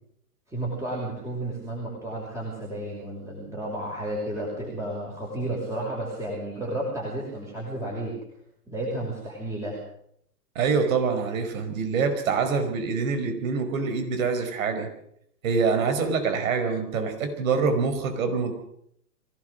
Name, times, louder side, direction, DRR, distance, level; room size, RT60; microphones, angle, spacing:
voice 1, 0.5-8.2 8.7-9.8, right 1 dB, 5° right, -4 dB, 5.7 m, -32 dB
voice 2, 10.5-14.9 15.4-18.5, right 5 dB, 55° right, 7 dB, 4.9 m, -25 dB
24.5 x 17.5 x 6.5 m, 0.72 s
hypercardioid pair, 130°, 48 cm